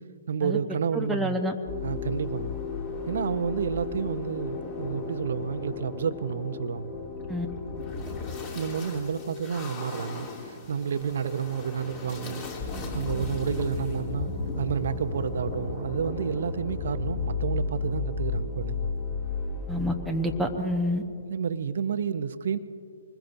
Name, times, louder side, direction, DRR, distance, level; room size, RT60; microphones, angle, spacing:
voice 1, 0.3-1.4 1.8-2.6 3.1-6.9 8.5-12.4 12.9-14.3 14.6-18.9 21.3-22.6, right 7 dB, 60° right, 0.8 m, -30 dB
voice 2, 0.9-1.5 7.3-7.5 19.7-21.0, equal, ahead, 1.0 m, -28 dB
sound 1, 1.7-20.6, left 4 dB, 30° left, 3.4 m, -34 dB
25.0 x 20.5 x 2.7 m
figure-of-eight pair, 130°, 0 cm